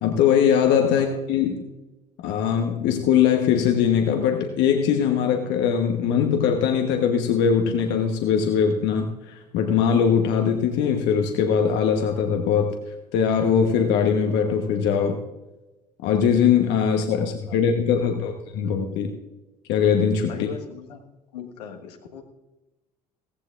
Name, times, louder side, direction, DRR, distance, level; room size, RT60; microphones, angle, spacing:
voice 1, 0.0-1.6 2.2-12.7 13.1-15.2 16.0-19.1 19.7-20.3, left 7 dB, 55° left, 4 dB, 1.2 m, -21 dB
voice 2, 17.2-17.6 20.3-21.0 21.3-22.2, left 7 dB, 75° left, 2 dB, 1.5 m, -39 dB
16.5 x 15.5 x 2.5 m, 1.1 s
figure-of-eight pair, 60°, 21 cm